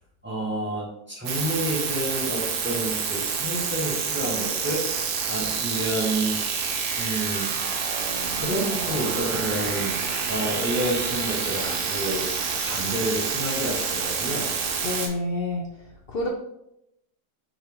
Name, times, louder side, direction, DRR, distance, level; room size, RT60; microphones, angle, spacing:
voice 1, 0.2-6.3 7.0-7.5 8.3-10.0 10.3-14.5, right 1 dB, 10° right, -5 dB, 0.9 m, -29 dB
sound 1, 1.3-15.1, right 5 dB, 75° right, 1.1 m, -28 dB
voice 2, 14.8-15.7 16.1-16.3, left 2 dB, 90° left, 0 dB, 0.5 m, -28 dB
4.4 x 2.8 x 3.5 m, 0.81 s
omnidirectional pair, 1.7 m